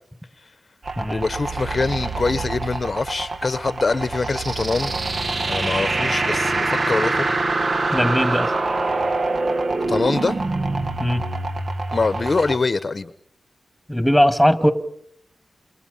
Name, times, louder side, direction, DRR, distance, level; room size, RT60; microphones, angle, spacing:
sound 1, 0.8-12.6, right 2 dB, 50° right, 1.7 m, -25 dB
voice 1, 1.1-5.0 5.5-7.3 9.9-10.4 11.9-13.1, left 3 dB, 45° left, 12 dB, 1.0 m, -24 dB
voice 2, 7.9-8.5 11.0-11.3 13.9-14.7, equal, ahead, 9 dB, 2.5 m, -19 dB
29.0 x 27.5 x 5.6 m, 0.66 s
cardioid pair, 70°, 0 cm